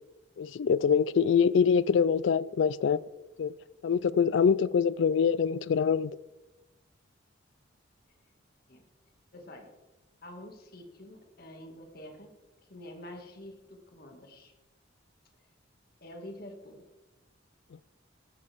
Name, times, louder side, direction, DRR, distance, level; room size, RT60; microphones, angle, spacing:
voice 1, 0.4-3.0 3.4-3.5 3.8-6.1, left 6 dB, 70° left, 0.3 m, -24 dB
voice 2, 9.3-9.7 10.2-12.3 12.7-14.5 16.0-16.8, left 1 dB, 50° left, 2.1 m, -47 dB
14.0 x 13.0 x 3.6 m
head